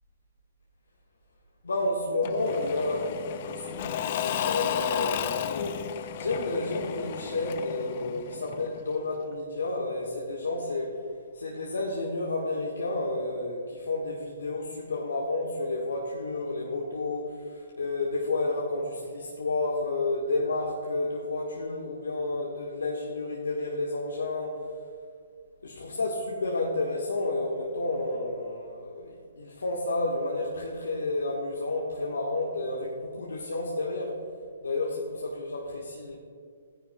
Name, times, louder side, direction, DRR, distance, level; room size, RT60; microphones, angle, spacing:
voice 1, 1.6-11.0 11.3-24.7 25.6-34.2 34.6-36.2, left 2 dB, 80° left, -2 dB, 1.3 m, -31 dB
Engine / Mechanisms / Drill, 2.2-8.9, left 9 dB, 45° left, 0.5 m, -33 dB
16.0 x 10.0 x 2.2 m, 2.2 s
hypercardioid pair, 130°, 0 cm